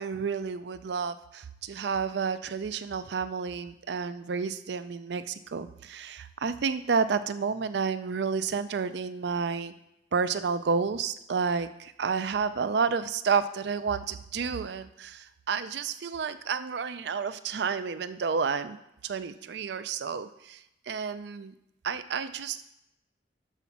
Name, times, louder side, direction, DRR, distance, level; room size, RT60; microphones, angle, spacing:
voice 1, 0.0-9.7 10.1-18.8 19.0-20.6 20.9-21.5 21.8-22.6, right 5 dB, 70° right, 13 dB, 0.4 m, -30 dB
6.0 x 5.6 x 5.7 m, 0.83 s
head